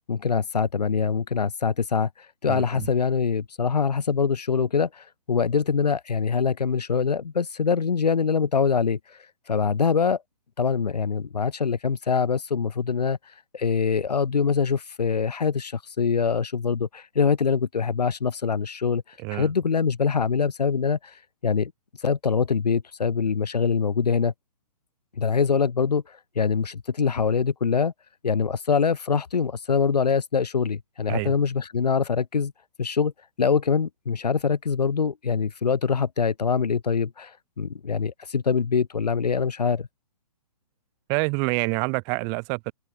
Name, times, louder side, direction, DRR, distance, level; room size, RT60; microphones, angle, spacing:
voice 1, 0.1-2.1 2.4-9.0 9.5-10.2 10.6-13.2 13.5-19.0 19.3-21.1 21.4-21.7 22.0-24.3 25.2-26.0 26.3-27.9 28.2-32.5 32.8-33.1 33.4-39.9, left 6 dB, 80° left, 4.5 m, -24 dB
voice 2, 2.5-2.9 19.2-19.5 31.1-31.3 41.1-42.7, right 37 dB, 15° right, 2.5 m, -27 dB
open air
hypercardioid pair, 180°, 20 cm